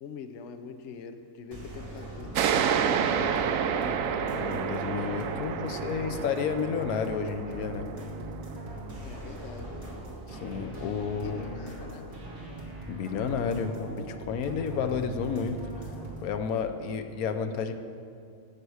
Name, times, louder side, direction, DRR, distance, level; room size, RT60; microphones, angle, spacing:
voice 1, 0.0-3.4 9.0-9.7 11.2-12.1, left 6 dB, 60° left, 8 dB, 0.9 m, -43 dB
sound 1, 1.5-16.3, right 1 dB, 45° right, 2.5 m, -41 dB
sound 2, 2.3-9.5, right 8 dB, 70° right, 1.0 m, -30 dB
voice 2, 4.3-7.9 10.3-11.4 12.9-15.6 16.2-17.7, left 6 dB, 85° left, 8 dB, 1.2 m, -31 dB
16.5 x 6.7 x 4.7 m, 2.4 s
omnidirectional pair, 1.5 m